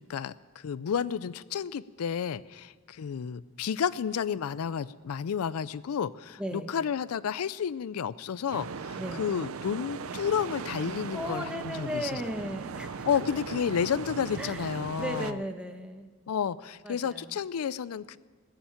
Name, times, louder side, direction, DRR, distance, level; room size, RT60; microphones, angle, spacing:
voice 1, 0.0-12.2 12.9-15.4 16.3-18.2, left 7 dB, 85° left, 18 dB, 0.4 m, -31 dB
voice 2, 6.4-6.7 9.0-9.3 11.1-13.1 14.4-14.6 15.0-16.1 16.8-17.4, equal, 5° right, 6 dB, 1.1 m, -36 dB
sound 1, 8.5-15.3, right 5 dB, 70° right, 0.5 m, -38 dB
20.0 x 7.1 x 8.8 m, 1.4 s
head